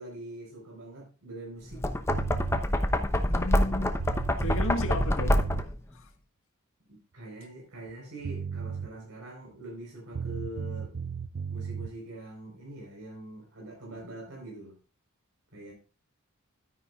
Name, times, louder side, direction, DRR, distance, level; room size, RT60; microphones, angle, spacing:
voice 1, 0.0-1.8 6.9-11.0 11.5-14.8 15.5-15.7, right 1 dB, 75° right, 4.5 m, -43 dB
Knock, 1.7-5.8, left 1 dB, 10° left, 0.8 m, -26 dB
sound 1, 2.1-2.6 3.6-3.7 4.0-5.7 7.9-8.0 8.2-8.9 10.1-11.9, right 6 dB, 50° right, 0.5 m, -35 dB
voice 2, 3.3-3.9 4.4-5.3 5.9-6.1, left 2 dB, 65° left, 1.7 m, -33 dB
12.5 x 9.6 x 2.4 m
head